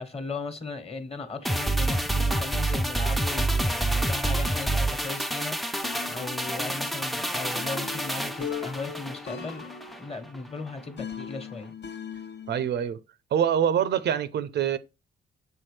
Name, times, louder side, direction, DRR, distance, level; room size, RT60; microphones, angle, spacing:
voice 1, 0.0-9.7 10.0-11.7, left 3 dB, 30° left, 1.3 m, -37 dB
sound 1, 1.4-10.0 10.3-10.5, right 1 dB, ahead, 0.4 m, -28 dB
sound 2, 5.8-12.7, left 7 dB, 60° left, 0.8 m, -40 dB
voice 2, 12.5-13.0 13.3-14.8, right 9 dB, 60° right, 0.5 m, -25 dB
6.8 x 4.4 x 3.2 m
cardioid pair, 90°, 20 cm